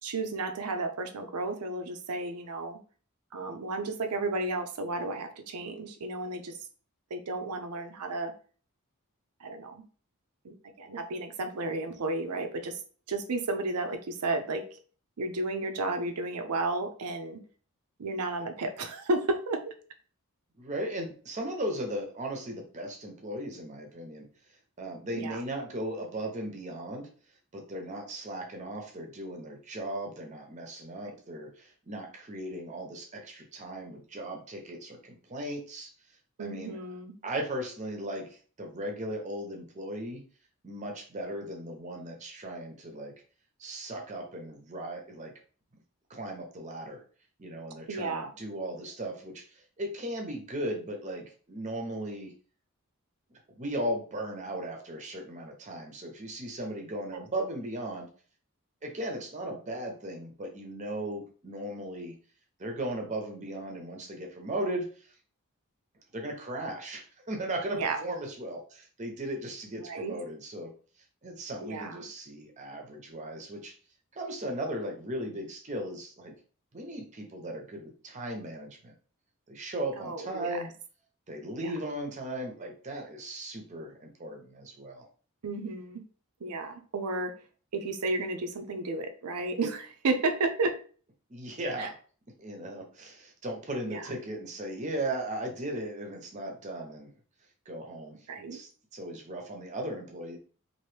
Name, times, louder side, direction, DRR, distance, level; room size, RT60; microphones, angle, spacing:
voice 1, 0.0-2.8 3.3-6.6 7.1-8.3 9.4-9.8 10.4-12.8 13.1-14.7 15.2-17.4 18.0-19.7 25.1-25.4 36.4-37.1 47.9-48.3 57.4-57.5 67.7-68.0 69.8-70.2 71.6-72.0 80.0-80.6 81.6-81.7 85.4-86.0 86.4-87.3 87.7-90.8 91.8-91.9 93.9-94.0 98.3-98.6, right 2 dB, 90° right, 7 dB, 0.6 m, -32 dB
voice 2, 20.5-24.3 24.8-27.1 27.5-35.9 36.4-36.8 37.2-40.2 40.6-43.2 43.6-45.3 46.1-47.0 47.4-52.3 53.5-58.1 58.8-62.2 62.6-65.1 66.1-70.7 71.2-73.7 74.1-76.4 76.7-78.9 79.5-80.7 81.3-85.1 91.3-92.0 92.4-97.1 97.7-100.4, right 1 dB, 30° right, 2 dB, 0.7 m, -37 dB
2.9 x 2.6 x 3.2 m, 0.41 s
head